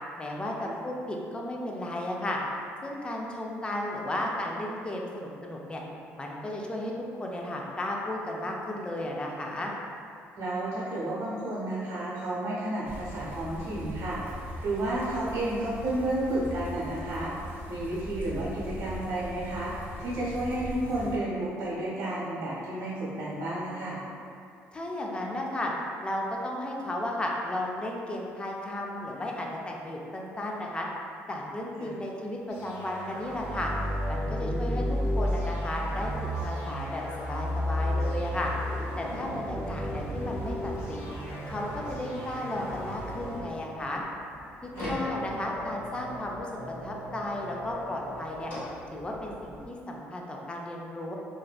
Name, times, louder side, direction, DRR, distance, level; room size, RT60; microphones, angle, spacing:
voice 1, 0.2-2.4 2.8-5.8 6.2-6.9 7.2-9.7 24.7-25.7 26.0-30.9 31.3-33.7 34.1-36.1 36.4-38.5 39.0-41.0 41.5-44.0 44.6-46.5 46.8-48.5 48.9-51.1, left 1 dB, 20° left, -1 dB, 0.4 m, -34 dB
voice 2, 10.4-14.2 14.6-17.3 17.7-19.7 20.0-24.0 31.8-31.9 34.4-34.8 39.5-39.7 44.7-45.0, right 1 dB, 70° right, -7 dB, 0.8 m, -32 dB
sound 1, 12.8-21.2, equal, 40° right, 0.6 m, -40 dB
sound 2, 32.5-43.5, equal, 65° left, 0.7 m, -32 dB
sound 3, 43.7-49.7, left 1 dB, 45° left, 1.3 m, -39 dB
2.6 x 2.1 x 2.3 m, 2.5 s
supercardioid pair, 85°, 5 cm